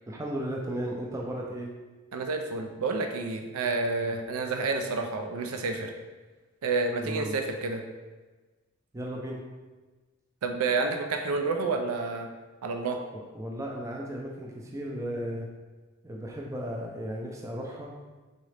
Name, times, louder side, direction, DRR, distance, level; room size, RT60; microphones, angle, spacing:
voice 1, 0.1-1.7 4.0-4.1 7.0-7.3 8.9-9.4 13.1-15.5 16.0-17.9, right 1 dB, 15° right, -1 dB, 0.4 m, -35 dB
voice 2, 2.1-5.9 6.6-7.8 10.4-12.3 12.6-13.0, right 3 dB, 80° right, 5 dB, 0.4 m, -29 dB
4.0 x 3.7 x 3.3 m, 1.3 s
head